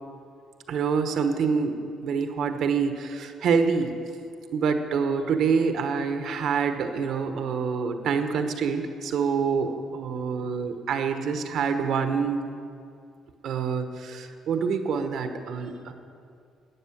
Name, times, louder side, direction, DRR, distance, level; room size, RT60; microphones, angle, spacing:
voice 1, 0.7-1.8 2.0-3.9 4.5-12.4 13.4-15.9, right 5 dB, 70° right, 7 dB, 1.2 m, -26 dB
13.5 x 9.3 x 7.4 m, 2.4 s
cardioid pair, 85°, 0 cm